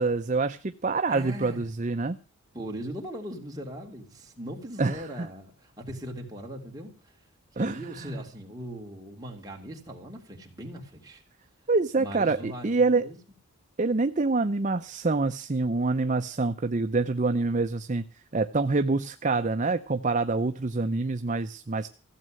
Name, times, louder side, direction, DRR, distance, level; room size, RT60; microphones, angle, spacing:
voice 1, 0.0-2.2 4.8-5.3 7.6-8.2 11.7-13.1 13.8-18.0 18.3-21.9, right 3 dB, 35° right, 8 dB, 0.6 m, -26 dB
voice 2, 1.1-1.6 2.5-7.1 7.5-11.2 12.0-13.2, equal, 15° right, -1 dB, 3.3 m, -39 dB
15.5 x 7.5 x 9.0 m, 0.39 s
head